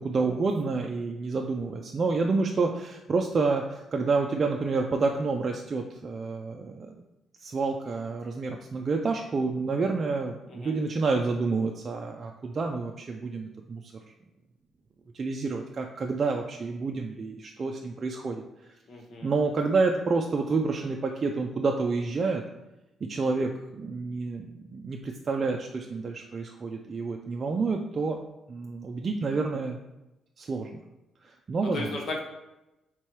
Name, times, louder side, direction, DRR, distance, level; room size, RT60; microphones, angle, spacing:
voice 1, 0.0-6.9 7.4-13.8 15.1-18.4 19.2-22.4 23.0-28.2 28.5-29.8 30.4-30.7 31.2-32.0, right 4 dB, 40° right, 2 dB, 0.4 m, -29 dB
voice 2, 18.9-19.3 31.6-32.2, left 2 dB, 60° left, 1 dB, 1.1 m, -35 dB
3.7 x 3.0 x 4.6 m, 0.96 s
cardioid pair, 90°, 0 cm